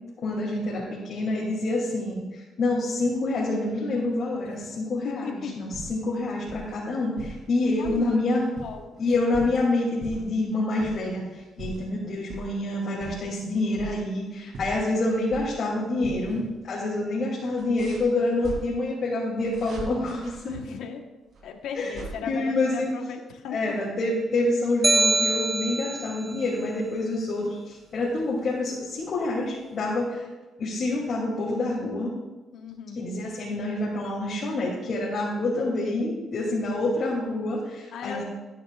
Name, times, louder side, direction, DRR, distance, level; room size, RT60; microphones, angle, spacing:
voice 1, 0.2-8.5 9.0-20.5 21.7-22.9 23.5-30.3 30.6-32.1 32.9-38.2, left 2 dB, 60° left, -5 dB, 2.8 m, -27 dB
voice 2, 5.0-5.5 7.8-8.2 8.6-9.1 11.6-11.8 16.2-16.5 20.5-21.0 21.4-23.8 32.5-33.0 37.9-38.2, left 7 dB, 80° left, 3 dB, 1.2 m, -36 dB
sound 1, 5.7-6.1 6.4-6.8 7.2-8.1 8.4-9.6 10.0-10.4 10.8-11.1 11.4-11.9 12.3-12.5 12.9-14.2 14.5-15.7 16.0-16.3 16.6-16.7 17.5-18.6 19.4-20.3 21.3-22.1, right 3 dB, 65° right, 3.3 m, -40 dB
sound 2, 24.8-26.2, right 3 dB, 20° right, 0.4 m, -23 dB
14.5 x 10.5 x 2.5 m, 1.2 s
cardioid pair, 90°, 0 cm